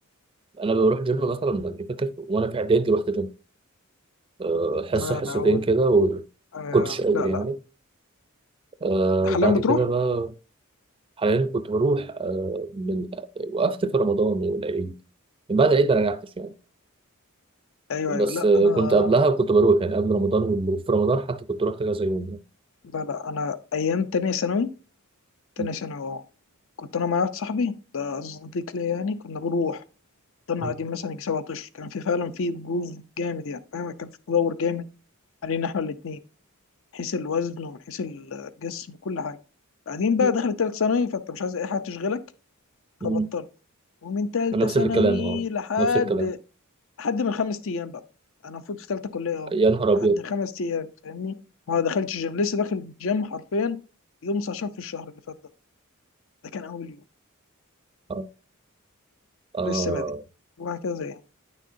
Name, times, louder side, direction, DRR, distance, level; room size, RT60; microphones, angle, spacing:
voice 1, 0.6-3.3 4.4-6.2 6.7-7.6 8.8-10.3 11.2-14.9 15.5-16.5 18.1-22.4 25.6-25.7 30.6-30.7 40.2-40.3 43.0-43.3 44.5-45.4 45.8-46.3 49.5-50.2 58.1-58.3 59.5-60.2, right 3 dB, 25° right, 0.4 m, -23 dB
voice 2, 4.9-5.6 6.5-7.4 9.2-9.8 17.9-19.3 22.9-24.7 25.6-26.2 26.8-29.8 30.5-34.9 35.4-36.2 36.9-39.4 39.9-42.2 43.0-43.5 44.0-46.4 47.0-48.0 48.4-49.5 50.0-51.3 51.7-53.8 54.2-55.1 56.5-57.0 59.6-60.1 60.6-61.2, left 5 dB, 65° left, 0.5 m, -28 dB
9.3 x 6.4 x 2.6 m
head